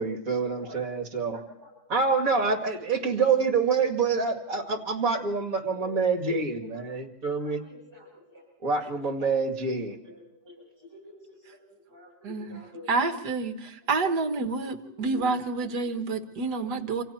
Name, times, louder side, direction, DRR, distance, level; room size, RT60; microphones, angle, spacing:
voice 1, 0.0-1.4 1.9-7.6 8.6-10.0, right 4 dB, 45° right, 4 dB, 2.6 m, -26 dB
voice 2, 1.3-1.8 2.9-3.3 3.8-5.2 5.7-6.0 6.3-6.8 7.4-8.5 8.8-9.5 9.8-13.0 13.6-15.3 15.6-15.7 16.1-16.2 16.7-16.8, left 2 dB, 10° right, -5 dB, 6.8 m, -48 dB
voice 3, 12.2-12.6 12.9-17.0, right 4 dB, 65° right, 7 dB, 2.0 m, -28 dB
28.0 x 27.0 x 4.5 m, 0.74 s
omnidirectional pair, 2.0 m